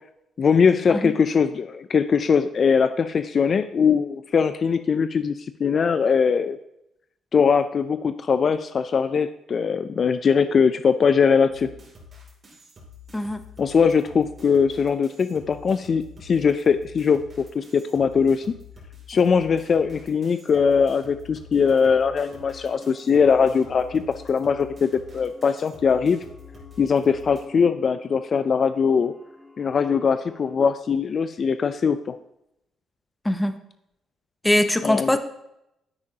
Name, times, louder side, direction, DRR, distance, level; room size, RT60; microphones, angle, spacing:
voice 1, 0.4-6.6 7.3-11.7 13.6-17.2 17.5-18.5 19.1-26.2 26.8-29.1 29.6-32.0 34.8-35.2, left 6 dB, 45° left, 11 dB, 0.4 m, -21 dB
sound 1, 11.5-27.4, left 5 dB, 40° right, 2.7 m, -47 dB
sound 2, 21.6-30.5, left 2 dB, 15° right, 1.8 m, -48 dB
voice 2, 34.4-35.2, left 1 dB, 10° left, 10 dB, 0.7 m, -21 dB
9.7 x 8.5 x 2.8 m, 0.82 s
cardioid pair, 90°, 0 cm